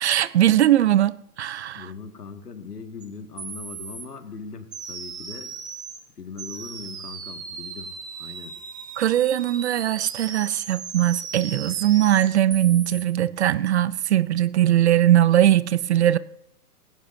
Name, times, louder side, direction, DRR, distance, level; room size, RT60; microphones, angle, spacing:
voice 1, 0.0-1.9 9.0-16.2, right 12 dB, 45° right, 0.5 m, -20 dB
voice 2, 1.7-5.6 6.2-8.6, left 5 dB, 85° left, 2.0 m, -40 dB
sound 1, 3.0-3.1 3.4-4.1 4.7-6.0 6.4-13.0, right 5 dB, 10° right, 0.8 m, -37 dB
18.5 x 16.5 x 2.7 m
hypercardioid pair, 130°, 46 cm